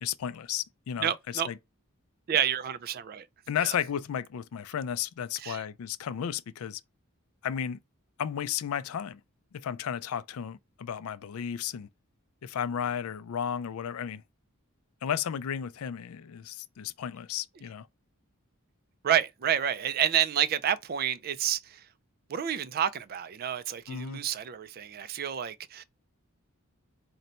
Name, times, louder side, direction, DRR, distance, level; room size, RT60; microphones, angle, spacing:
voice 1, 0.0-1.6 3.5-6.8 7.4-7.8 8.2-9.2 9.5-11.9 12.4-14.2 15.0-17.9 23.9-24.2, left 8 dB, 80° left, 0.4 m, -33 dB
voice 2, 1.0-1.5 2.3-3.2 5.4-5.6 19.0-21.6 22.3-25.8, right 9 dB, 45° right, 0.3 m, -29 dB
3.9 x 2.2 x 4.2 m
head